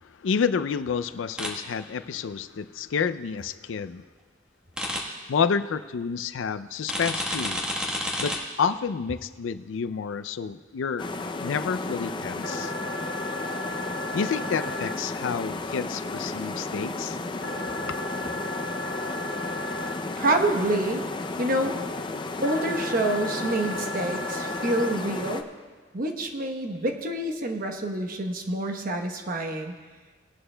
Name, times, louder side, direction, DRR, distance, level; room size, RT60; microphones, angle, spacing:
voice 1, 0.2-4.0 5.3-7.6 8.2-11.1 11.4-12.7 14.1-17.2 17.9-18.0, left 6 dB, 85° left, 12 dB, 0.4 m, -29 dB
sound 1, 1.4-1.5 4.8-5.0 6.9-8.4, left 1 dB, 5° right, 1.3 m, -29 dB
sound 2, 11.0-25.4, left 2 dB, 25° left, 0.5 m, -33 dB
sound 3, 12.4-14.9 17.4-19.9 22.4-24.9, left 1 dB, 65° left, 0.9 m, -35 dB
voice 2, 20.2-21.1 21.4-21.7 22.4-25.5 25.9-29.7, right 1 dB, 50° right, 4 dB, 1.0 m, -27 dB
19.0 x 11.0 x 2.2 m, 1.4 s
head